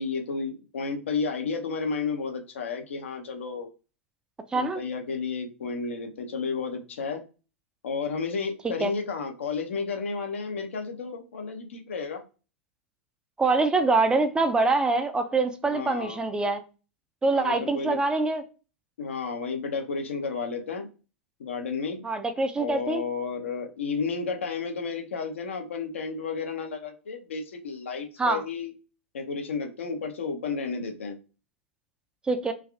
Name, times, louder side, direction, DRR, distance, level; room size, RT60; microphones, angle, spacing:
voice 1, 0.0-3.7 4.5-7.2 7.8-12.2 15.6-16.2 17.3-18.0 19.0-20.9 21.4-22.0 22.6-28.7 29.1-31.2, left 5 dB, 70° left, 5 dB, 0.6 m, -32 dB
voice 2, 13.4-16.6 17.2-18.4 22.0-23.0 28.2-28.4 32.3-32.5, right 3 dB, 10° right, 7 dB, 0.3 m, -24 dB
3.3 x 2.3 x 2.3 m, 0.34 s
figure-of-eight pair, 95°, 7 cm